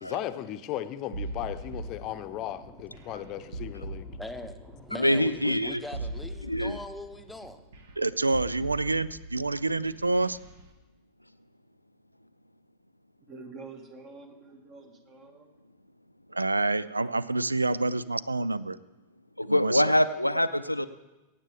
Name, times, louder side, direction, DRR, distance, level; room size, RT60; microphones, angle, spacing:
voice 1, 0.0-4.1, left 12 dB, 35° left, 0.8 m, -36 dB
sound 1, 1.1-10.6, right 2 dB, 60° right, 1.5 m, -40 dB
voice 2, 1.8-7.6, left 1 dB, 5° left, 1.0 m, -43 dB
voice 3, 5.0-5.8 6.4-6.8 19.4-20.9, equal, 90° left, 0.5 m, -24 dB
voice 4, 8.0-10.4 16.3-18.8 19.4-19.9, right 2 dB, 80° right, 0.4 m, -27 dB
voice 5, 13.3-15.5, right 3 dB, 35° right, 2.0 m, -47 dB
23.0 x 9.0 x 3.5 m
figure-of-eight pair, 90°, 0 cm